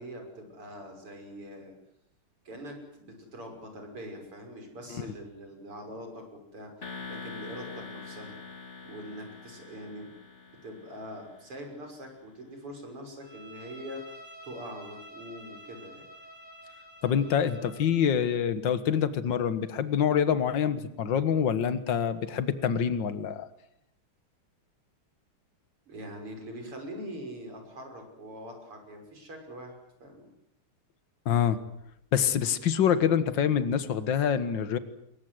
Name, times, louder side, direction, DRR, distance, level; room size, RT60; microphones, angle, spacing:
voice 1, 0.0-1.7 2.5-8.3 8.8-10.1 10.6-14.2 14.4-16.0 25.9-30.3, equal, 85° right, 4 dB, 7.0 m, -43 dB
sound 1, 6.8-11.7, left 4 dB, 30° left, 2.5 m, -44 dB
Bowed string instrument, 13.2-18.1, equal, 50° right, 3.9 m, -49 dB
voice 2, 17.0-23.5 31.3-31.6 32.1-34.8, left 8 dB, 60° left, 12 dB, 2.1 m, -26 dB
27.5 x 22.5 x 8.0 m, 0.76 s
omnidirectional pair, 2.4 m